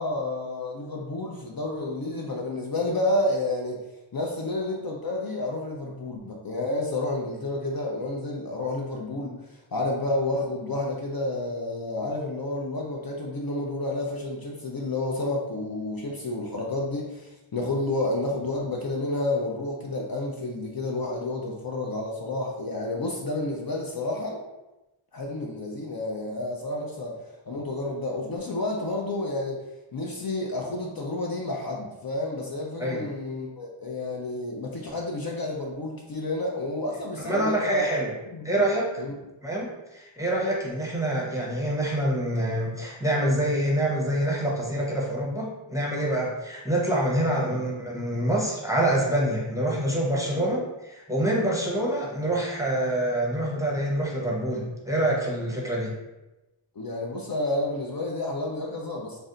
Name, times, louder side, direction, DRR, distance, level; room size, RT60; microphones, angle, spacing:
voice 1, 0.0-3.8 4.1-9.3 9.7-24.4 25.1-29.6 29.9-38.0 38.3-38.5 39.0-39.1 47.4-47.6 50.4-50.5 56.8-59.2, left 2 dB, 50° left, -1 dB, 0.5 m, -30 dB
voice 2, 37.2-38.1 38.4-38.9 39.4-55.9, right 1 dB, 5° right, -4 dB, 0.7 m, -26 dB
2.6 x 2.1 x 3.6 m, 1.0 s
wide cardioid pair, 60°, 49 cm